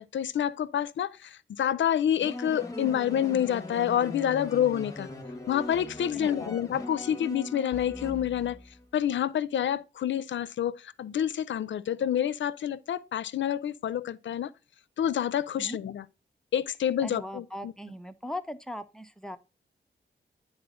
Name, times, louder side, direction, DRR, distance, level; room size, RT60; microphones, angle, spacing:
voice 1, 0.0-5.1 5.5-8.6 8.9-14.5 15.0-16.0 16.5-17.7, left 10 dB, 85° left, 0.5 m, -28 dB
sound 1, 2.2-8.9, left 2 dB, 20° left, 1.2 m, -40 dB
voice 2, 6.1-6.6 15.6-15.8 17.0-19.4, left 1 dB, 5° left, 0.6 m, -39 dB
9.6 x 4.1 x 3.7 m
wide cardioid pair, 90°, 19 cm